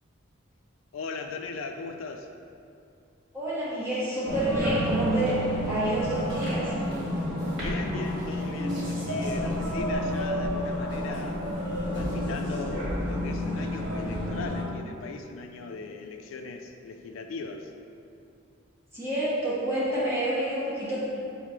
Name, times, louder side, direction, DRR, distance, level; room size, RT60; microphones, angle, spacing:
voice 1, 0.9-2.3 7.6-11.4 11.9-17.7, left 4 dB, 75° left, 5 dB, 0.3 m, -38 dB
voice 2, 3.3-6.7 18.9-21.0, right 1 dB, 10° right, -10 dB, 0.8 m, -28 dB
sound 1, 4.3-14.6, equal, 55° right, 1.4 m, -30 dB
3.6 x 2.8 x 4.7 m, 2.5 s
head